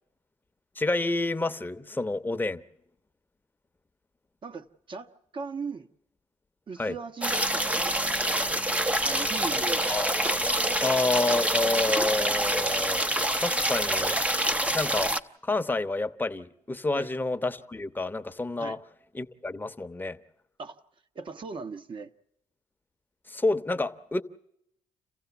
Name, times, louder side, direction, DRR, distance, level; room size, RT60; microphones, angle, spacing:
voice 1, 0.8-2.6 6.8-7.0 9.9-10.4 10.8-13.0 13.4-14.2 14.7-15.1 15.4-18.8 19.1-20.2 23.3-24.2, left 2 dB, 15° left, 1.0 m, -29 dB
voice 2, 4.4-5.9 6.7-8.4 9.0-9.9 16.9-17.1 18.6-18.8 20.6-20.8 21.1-22.1, right 5 dB, 45° right, 1.3 m, -39 dB
sound 1, 7.2-15.2, right 1 dB, 10° right, 0.8 m, -26 dB
28.0 x 15.5 x 7.1 m
supercardioid pair, 70°, 12 cm